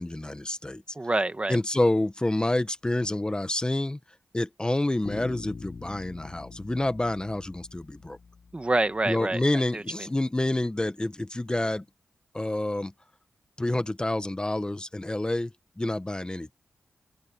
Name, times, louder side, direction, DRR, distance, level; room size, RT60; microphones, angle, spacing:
voice 1, 0.0-0.8 1.5-4.0 4.3-8.2 9.1-11.8 12.3-12.9 13.6-15.5 15.8-16.6, left 1 dB, 20° left, 1.2 m, -28 dB
voice 2, 0.9-1.6 8.5-9.4 9.7-9.8, right 2 dB, 25° right, 1.5 m, -26 dB
Bass guitar, 5.0-9.1, left 4 dB, 60° left, 5.7 m, -44 dB
open air
cardioid pair, 65°, 5 cm